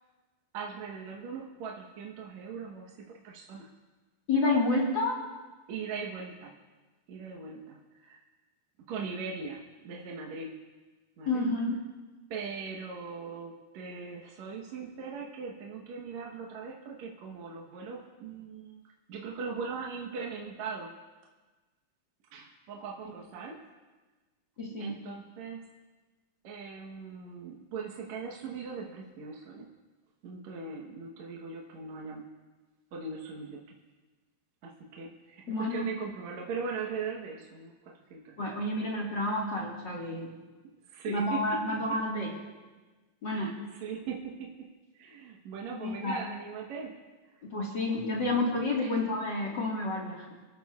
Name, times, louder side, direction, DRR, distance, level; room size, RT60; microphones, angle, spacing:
voice 1, 0.5-3.7 5.7-6.5 7.1-8.2 8.9-10.5 11.2-11.4 12.3-18.8 19.1-20.9 22.3-23.6 24.8-25.6 26.4-29.7 30.2-32.2 32.9-33.6 34.6-38.5 40.9-41.8 43.3-44.7 44.9-46.9 47.3-47.4 48.2-48.3 48.8-49.0, right 5 dB, 65° right, -1 dB, 1.9 m, -40 dB
voice 2, 4.3-5.2 11.2-11.8 24.6-25.0 35.5-35.9 38.4-40.3 41.1-42.4 43.2-43.5 45.8-46.2 47.4-50.3, left 2 dB, 45° left, -3 dB, 1.6 m, -30 dB
26.5 x 13.0 x 2.4 m, 1.3 s
omnidirectional pair, 4.4 m